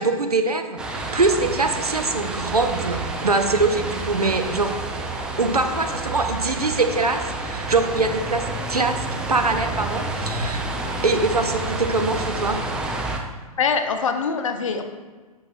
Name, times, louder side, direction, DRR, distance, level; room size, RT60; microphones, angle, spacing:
voice 1, 0.0-4.7 5.4-9.0 9.3-10.6 11.0-12.6, right 3 dB, 80° right, 6 dB, 0.7 m, -23 dB
sound 1, 0.8-13.2, right 2 dB, 5° right, 0.4 m, -29 dB
voice 2, 13.6-14.8, left 5 dB, 55° left, 7 dB, 0.8 m, -23 dB
11.0 x 5.7 x 2.5 m, 1.4 s
figure-of-eight pair, 115°, 19 cm